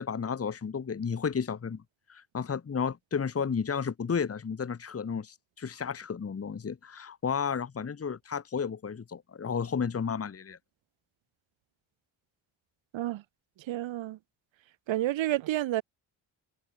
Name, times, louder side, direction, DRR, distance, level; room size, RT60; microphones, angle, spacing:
voice 1, 0.0-1.8 2.1-10.6, left 6 dB, 30° left, 1.6 m, -32 dB
voice 2, 13.7-14.2 14.9-15.8, right 14 dB, 80° right, 1.2 m, -29 dB
cardioid pair, 100°, 45 cm